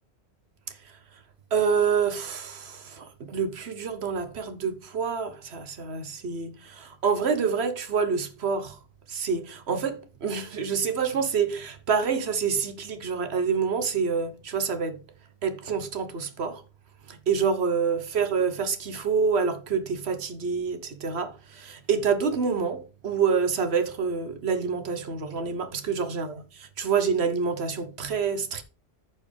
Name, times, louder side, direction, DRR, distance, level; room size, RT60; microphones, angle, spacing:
voice 1, 1.5-8.8 9.1-15.0 15.4-16.6 17.1-28.6, right 6 dB, 70° right, 1.3 m, -27 dB
14.0 x 4.7 x 3.4 m
omnidirectional pair, 1.1 m